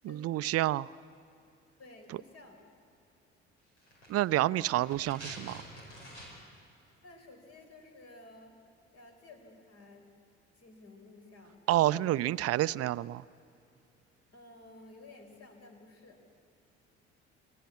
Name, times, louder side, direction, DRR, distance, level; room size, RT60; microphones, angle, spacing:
voice 1, 0.0-0.9 4.1-5.6 11.7-13.2, right 15 dB, 45° right, 18 dB, 0.5 m, -28 dB
voice 2, 1.8-2.7 7.0-8.6 8.9-10.1 10.6-11.7 14.3-16.2, left 2 dB, 45° left, 4 dB, 4.1 m, -53 dB
sound 1, 3.8-6.6 6.9-7.0, equal, 85° left, 4.7 m, -48 dB
26.0 x 18.0 x 8.3 m, 2.6 s
figure-of-eight pair, 50°, 34 cm